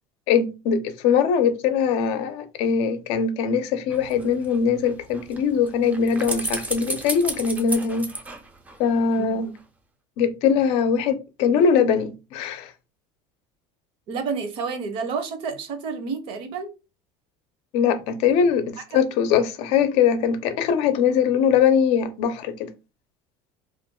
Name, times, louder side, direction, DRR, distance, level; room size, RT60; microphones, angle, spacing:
voice 1, 0.3-8.1 8.8-9.5 10.2-12.7 17.7-22.7, left 7 dB, 60° left, 0.6 m, -21 dB
sound 1, 3.9-9.2 9.6-9.7, right 2 dB, 10° right, 0.4 m, -34 dB
voice 2, 14.1-16.7 18.9-19.0, right 5 dB, 50° right, 0.7 m, -30 dB
2.5 x 2.2 x 3.7 m
cardioid pair, 160°, 12 cm